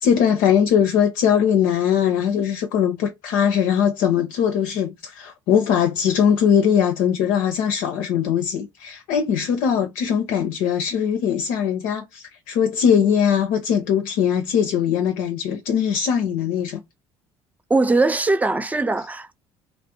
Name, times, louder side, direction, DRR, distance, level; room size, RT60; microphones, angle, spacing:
voice 1, 0.0-16.8, left 8 dB, 60° left, 0.4 m, -20 dB
voice 2, 17.7-19.3, right 3 dB, 10° right, 0.3 m, -20 dB
2.4 x 2.0 x 2.7 m
figure-of-eight pair, 55°, 15 cm